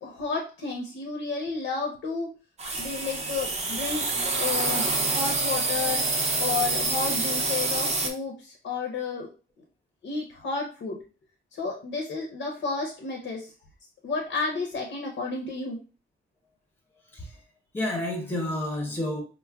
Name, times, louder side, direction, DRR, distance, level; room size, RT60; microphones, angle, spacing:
voice 1, 0.0-2.3 2.8-6.0 6.4-9.3 10.0-11.0 11.5-13.5 14.0-15.8, left 4 dB, 70° left, 0.6 m, -32 dB
sound 1, 2.6-8.1, right 3 dB, 30° right, 0.5 m, -27 dB
voice 2, 17.1-17.4 17.7-19.2, left 1 dB, 10° left, 0.7 m, -30 dB
4.5 x 2.1 x 2.2 m
wide cardioid pair, 155°, 21 cm